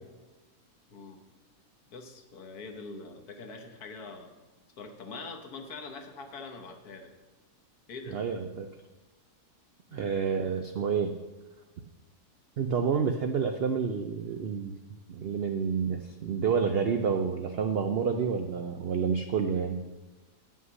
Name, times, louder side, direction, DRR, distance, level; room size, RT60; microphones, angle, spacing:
voice 1, 1.9-4.3 4.8-7.1 7.9-8.2 9.9-10.1, left 3 dB, 70° left, 4 dB, 1.6 m, -43 dB
voice 2, 8.1-8.7 9.9-11.1 12.6-14.7 15.1-19.8, right 6 dB, 90° right, 6 dB, 0.5 m, -29 dB
9.6 x 5.7 x 6.3 m, 1.2 s
omnidirectional pair, 1.7 m